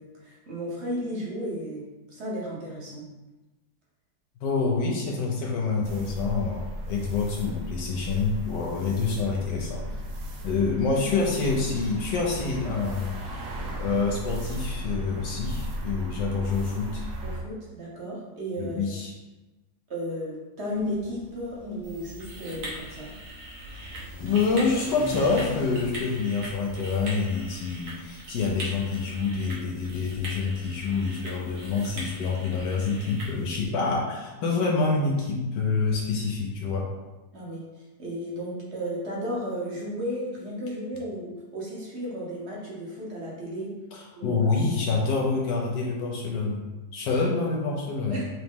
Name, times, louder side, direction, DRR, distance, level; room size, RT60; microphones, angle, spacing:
voice 1, 0.0-3.1 8.6-8.7 17.2-19.0 19.9-23.1 37.3-43.7 44.1-44.4 47.2-47.3 48.1-48.3, equal, 45° right, -4 dB, 1.1 m, -34 dB
voice 2, 4.4-9.9 10.4-13.1 13.8-17.0 18.6-19.1 24.2-36.9 43.9-46.6 46.9-48.2, left 4 dB, 80° left, -1 dB, 1.3 m, -27 dB
sound 1, 5.8-17.4, equal, 85° right, 1.3 m, -36 dB
Car / Accelerating revving vroom, 20.7-30.1, left 4 dB, 60° left, 1.4 m, -43 dB
sound 2, 21.8-33.7, right 1 dB, 65° right, 1.6 m, -41 dB
3.9 x 3.0 x 3.6 m, 1.1 s
omnidirectional pair, 1.9 m